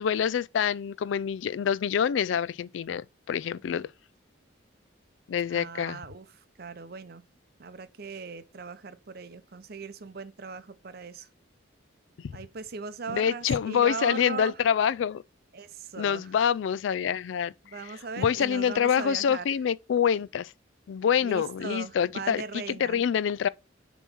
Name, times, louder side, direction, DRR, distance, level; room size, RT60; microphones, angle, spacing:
voice 1, 0.0-3.9 5.3-6.0 12.2-12.3 13.1-15.2 16.0-17.5 18.2-20.5 20.9-23.5, left 8 dB, 70° left, 0.3 m, -26 dB
voice 2, 5.5-7.2 7.6-11.3 12.3-14.6 15.5-16.3 17.6-19.5 21.2-23.0, right 4 dB, 50° right, 0.6 m, -39 dB
7.0 x 3.1 x 5.6 m
head